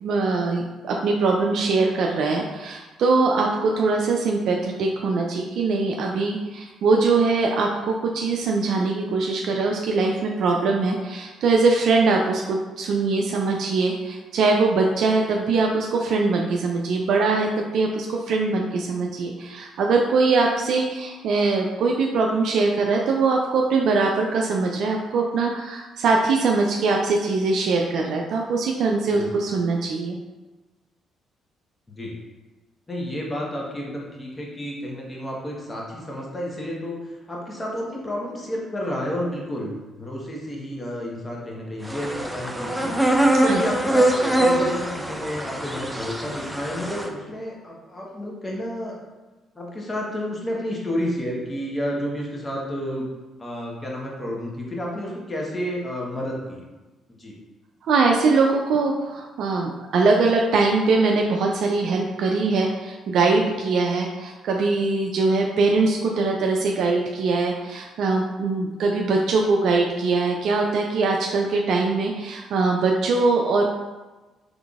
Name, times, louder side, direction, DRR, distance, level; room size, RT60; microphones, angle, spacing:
voice 1, 0.0-30.2 43.3-43.6 57.9-73.7, right 3 dB, 70° right, 1 dB, 0.3 m, -22 dB
voice 2, 32.9-42.9 43.4-49.0 49.5-53.1 53.4-56.6 57.2-57.3, equal, 25° left, -3 dB, 1.1 m, -31 dB
sound 1, 41.8-47.1, right 1 dB, ahead, 0.5 m, -23 dB
3.7 x 3.4 x 2.4 m, 1.2 s
supercardioid pair, 60°, 0 cm